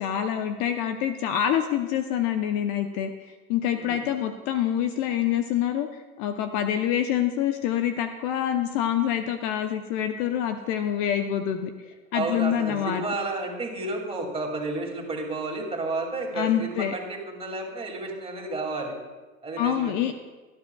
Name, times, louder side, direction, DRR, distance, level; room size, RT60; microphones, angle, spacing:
voice 1, 0.0-5.9 6.2-11.7 12.1-13.0 16.3-16.9 19.6-20.1, left 10 dB, 45° left, 7 dB, 0.8 m, -26 dB
voice 2, 12.1-18.9 19.4-19.9, right 2 dB, 15° right, 1 dB, 2.5 m, -31 dB
19.0 x 11.5 x 2.4 m, 1.3 s
hypercardioid pair, 110°, 43 cm